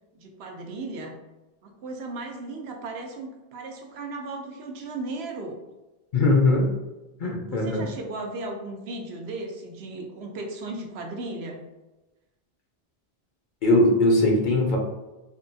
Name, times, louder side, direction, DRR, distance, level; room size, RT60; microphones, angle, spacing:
voice 1, 0.1-1.2 1.6-5.6 7.5-11.7, right 2 dB, 80° right, 2 dB, 0.8 m, -36 dB
voice 2, 6.1-6.7 7.2-7.8 13.6-14.8, left 2 dB, 55° left, -1 dB, 0.7 m, -20 dB
3.6 x 2.4 x 2.5 m, 1.1 s
omnidirectional pair, 1.1 m